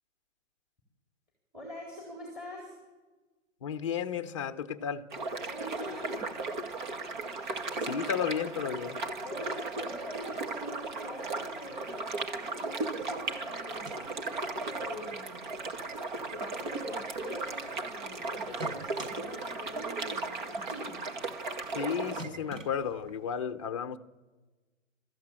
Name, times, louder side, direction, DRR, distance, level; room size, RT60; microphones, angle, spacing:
voice 1, 1.5-2.7 5.5-6.2 7.8-8.1 9.2-15.4 16.3-21.0, left 1 dB, ahead, 4.1 m, -44 dB
voice 2, 3.6-5.0 7.9-9.0 21.7-24.0, left 7 dB, 25° left, 0.9 m, -33 dB
sound 1, 5.1-22.2, right 3 dB, 40° right, 2.1 m, -36 dB
sound 2, 13.6-14.8 15.1-15.2 15.5-15.9 16.3-17.9 18.3-19.1 19.5-19.6 19.9-20.0 20.3-20.4 20.7-20.8 21.1-21.2 21.4-21.5 21.8-21.9 22.2-23.2, right 2 dB, 85° right, 6.3 m, -44 dB
29.5 x 14.5 x 8.8 m
hypercardioid pair, 175°, 38 cm